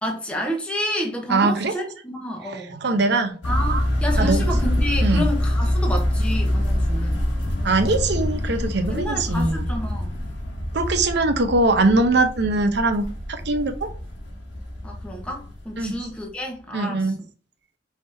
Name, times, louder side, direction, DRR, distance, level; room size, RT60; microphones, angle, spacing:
voice 1, 0.0-2.7 3.4-7.2 8.9-10.1 14.8-17.1, equal, 5° left, 1.0 m, -30 dB
voice 2, 1.3-1.7 2.4-3.3 3.6-3.8 4.2-4.4 5.0-5.2 7.6-9.6 10.7-13.9 15.8-15.9 16.7-17.2, right 2 dB, 65° right, 0.8 m, -22 dB
sound 1, 3.4-16.3, left 1 dB, 80° left, 1.4 m, -25 dB
5.0 x 3.5 x 2.7 m
head